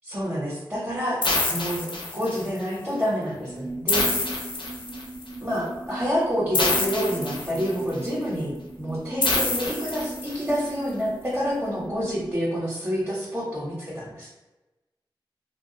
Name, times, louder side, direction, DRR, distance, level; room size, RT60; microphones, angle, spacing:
voice 1, 0.0-1.2 1.5-4.3 5.4-8.5 8.8-14.3, equal, 20° right, -8 dB, 0.8 m, -28 dB
sound 1, 1.2-2.6 3.9-5.2 6.5-7.9 9.2-10.6, left 2 dB, 75° left, 0.5 m, -26 dB
sound 2, 3.5-12.3, right 2 dB, 60° right, 0.4 m, -39 dB
2.2 x 2.2 x 2.7 m, 1.1 s
wide cardioid pair, 65°, 9 cm